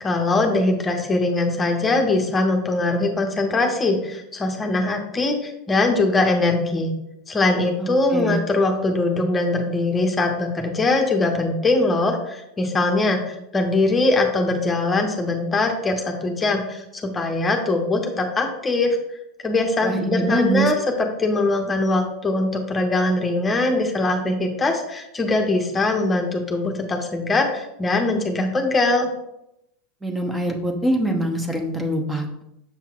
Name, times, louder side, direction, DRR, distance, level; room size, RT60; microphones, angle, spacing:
voice 1, 0.0-6.9 7.3-19.0 19.4-29.1, left 2 dB, 20° left, 2 dB, 0.9 m, -22 dB
voice 2, 7.8-8.4 19.8-20.7 30.0-32.4, right 1 dB, 10° right, 2 dB, 1.0 m, -24 dB
6.9 x 5.6 x 2.4 m, 0.83 s
hypercardioid pair, 85°, 0 cm